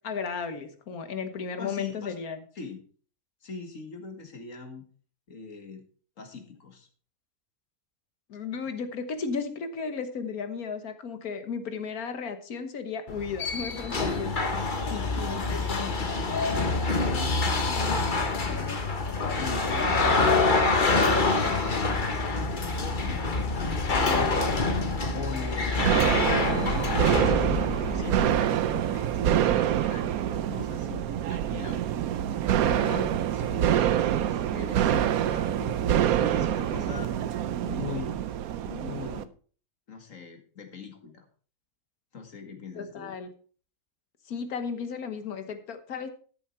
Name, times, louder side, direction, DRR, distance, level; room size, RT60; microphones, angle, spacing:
voice 1, 0.0-2.4 8.3-14.5 32.7-33.0 42.7-43.3 44.3-46.1, left 5 dB, 75° left, 9 dB, 1.7 m, -34 dB
voice 2, 1.6-2.2 2.6-2.8 3.4-4.9 5.3-5.8 6.2-6.9 14.5-18.9 19.3-24.5 24.8-25.7 26.1-31.8 32.3-37.1 37.6-38.2 38.6-39.3 39.9-41.3 42.1-43.2, left 5 dB, 60° left, 5 dB, 2.2 m, -41 dB
sound 1, 13.1-28.2, left 3 dB, 35° left, 1.2 m, -26 dB
sound 2, 25.8-39.2, right 10 dB, 75° right, 1.1 m, -26 dB
13.0 x 7.2 x 4.4 m, 0.42 s
omnidirectional pair, 1.6 m